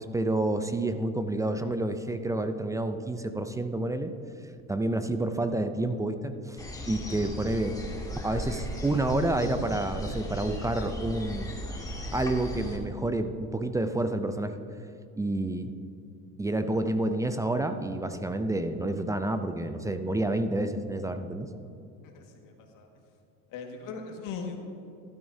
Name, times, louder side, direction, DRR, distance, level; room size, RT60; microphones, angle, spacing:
voice 1, 0.0-4.1 4.7-6.6 6.9-7.8 8.2-11.5 12.1-14.5 15.2-15.7 16.4-21.5, right 2 dB, 10° right, 9 dB, 0.4 m, -29 dB
sound 1, 6.6-12.8, equal, 10° left, 1.7 m, -37 dB
voice 2, 22.0-22.9 23.5-24.6, left 5 dB, 60° left, 2 dB, 1.7 m, -39 dB
12.5 x 12.0 x 2.7 m, 2.5 s
supercardioid pair, 100°, 36 cm